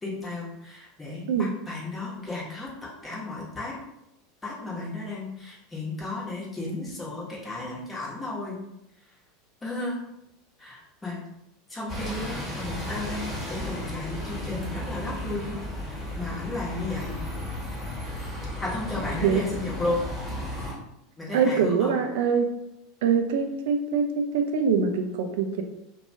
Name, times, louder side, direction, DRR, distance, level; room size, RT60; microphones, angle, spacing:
voice 1, 0.0-3.7 4.4-8.6 9.6-10.0 10.6-11.2 11.7-17.2 18.6-20.0 21.2-22.0, left 2 dB, 15° left, -5 dB, 1.1 m, -34 dB
Bus, 11.9-20.7, left 1 dB, 10° right, 1.3 m, -34 dB
voice 2, 21.3-22.5 23.0-25.6, right 6 dB, 65° right, 5 dB, 0.4 m, -24 dB
2.8 x 2.2 x 2.7 m, 0.83 s
figure-of-eight pair, 80°, 0 cm